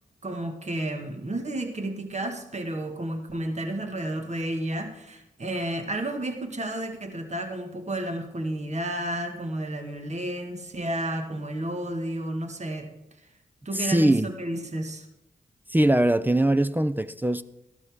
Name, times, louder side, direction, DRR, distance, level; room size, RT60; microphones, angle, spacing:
voice 1, 0.2-12.9 13.7-15.1, right 1 dB, 45° right, 5 dB, 1.6 m, -31 dB
voice 2, 13.7-14.3 15.7-17.4, right 1 dB, 10° right, 13 dB, 0.5 m, -21 dB
13.5 x 12.0 x 3.6 m, 0.90 s
supercardioid pair, 45°, 16 cm